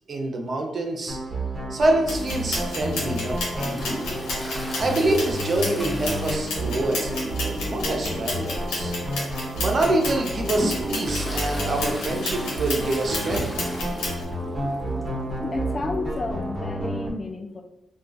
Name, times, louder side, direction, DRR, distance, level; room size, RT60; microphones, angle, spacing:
voice 1, 0.1-1.2 1.7-4.0 4.8-8.9 9.6-13.8, right 2 dB, 50° right, 2 dB, 0.6 m, -26 dB
sound 1, 1.1-17.1, right 1 dB, 30° right, 1.0 m, -30 dB
sound 2, 2.1-14.2, left 2 dB, 90° left, 0.8 m, -32 dB
Toilet flush, 3.7-7.1 7.4-7.5 7.9-8.0 8.8-9.0 9.5-14.4 14.7-14.8 15.0-15.1 16.2-16.3, left 1 dB, 10° left, 0.7 m, -36 dB
voice 2, 15.4-17.6, left 3 dB, 45° left, 5 dB, 0.4 m, -31 dB
2.3 x 2.3 x 3.8 m, 0.91 s
supercardioid pair, 50°, 0 cm